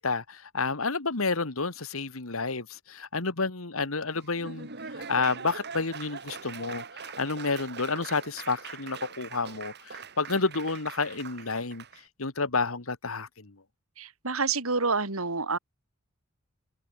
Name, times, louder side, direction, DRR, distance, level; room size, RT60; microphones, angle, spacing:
voice 1, 0.0-4.7 5.1-11.8 12.2-13.6, left 4 dB, 75° left, 2.0 m, -30 dB
Laughter / Applause, 4.1-12.0, right 5 dB, 55° right, 4.1 m, -42 dB
voice 2, 14.0-15.6, right 4 dB, 85° right, 3.3 m, -28 dB
head